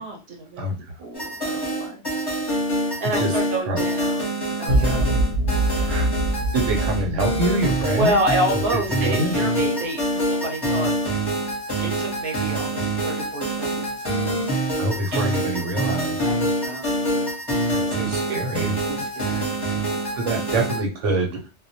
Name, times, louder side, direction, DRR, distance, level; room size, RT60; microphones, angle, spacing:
voice 1, 0.0-2.0 3.0-5.3 5.7-6.0 7.9-10.9 11.8-15.5 16.2-17.3 17.7-18.0 18.8-19.5, right 1 dB, 60° right, 1 dB, 0.9 m, -29 dB
sound 1, 1.1-20.8, right 1 dB, 25° left, 0.8 m, -26 dB
sound 2, 4.7-9.0, right 1 dB, 70° left, 0.9 m, -24 dB
voice 2, 4.7-5.2 5.9-6.1 6.5-8.2 8.9-9.3 14.8-16.2 17.7-18.7 20.1-21.3, right 1 dB, 85° right, 1 dB, 1.0 m, -25 dB
2.2 x 2.1 x 2.7 m, 0.31 s
omnidirectional pair, 1.2 m